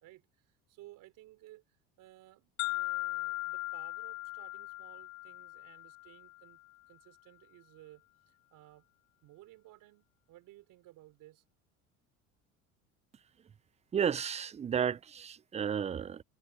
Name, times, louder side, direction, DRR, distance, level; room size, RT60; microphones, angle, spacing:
voice 1, 0.0-1.6 2.0-6.6 6.9-8.9 9.2-11.4, right 16 dB, 60° right, 3.3 m, -57 dB
sound 1, 2.6-6.6, left 22 dB, 50° left, 0.4 m, -38 dB
voice 2, 13.9-16.2, right 8 dB, 20° right, 0.4 m, -32 dB
supercardioid pair, 90°, 36 cm